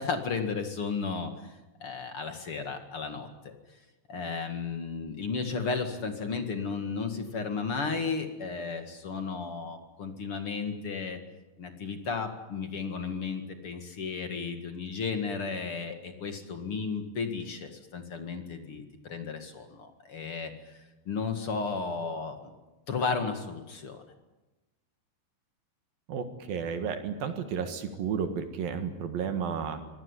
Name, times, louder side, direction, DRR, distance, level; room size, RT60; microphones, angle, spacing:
voice 1, 0.0-1.5 1.8-3.5 4.1-11.2 11.6-20.5 21.1-22.4 22.9-24.0, left 4 dB, 45° left, 6 dB, 2.0 m, -34 dB
voice 2, 26.1-29.8, right 6 dB, 65° right, 7 dB, 3.2 m, -32 dB
24.5 x 18.0 x 9.8 m, 1.1 s
omnidirectional pair, 4.9 m